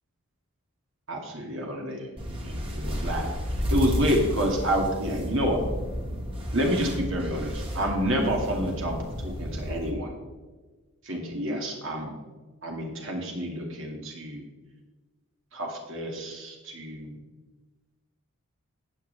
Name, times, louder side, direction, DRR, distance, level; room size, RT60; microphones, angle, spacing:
voice 1, 1.1-2.1 2.4-5.6 6.5-10.1 11.0-12.1 12.6-14.4 15.5-17.2, equal, 60° right, 0 dB, 2.2 m, -29 dB
sound 1, 2.2-9.9, equal, 25° right, 2.0 m, -32 dB
14.5 x 9.3 x 3.4 m, 1.3 s
head